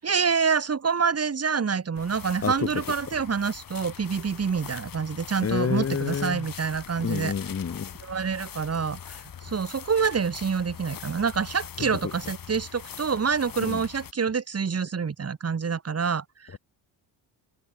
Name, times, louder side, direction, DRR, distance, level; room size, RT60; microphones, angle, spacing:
voice 1, 0.0-7.3 8.0-16.6, right 6 dB, 30° right, 7.2 m, -27 dB
sound 1, 1.9-14.1, left 8 dB, 45° left, 6.3 m, -42 dB
voice 2, 5.4-6.5 7.0-7.9 11.8-11.9 13.6-13.8, left 6 dB, 30° left, 2.4 m, -28 dB
cardioid pair, 115°, 45 cm